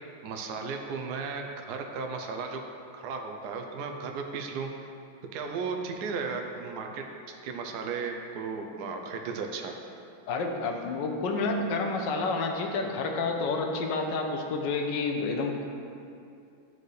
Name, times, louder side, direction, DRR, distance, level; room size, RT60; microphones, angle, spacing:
voice 1, 0.2-2.6 2.9-4.7 5.3-9.8, right 5 dB, 70° right, 3 dB, 1.0 m, -35 dB
voice 2, 10.3-15.7, left 3 dB, 70° left, 3 dB, 1.3 m, -29 dB
12.5 x 4.4 x 3.2 m, 2.5 s
omnidirectional pair, 2.2 m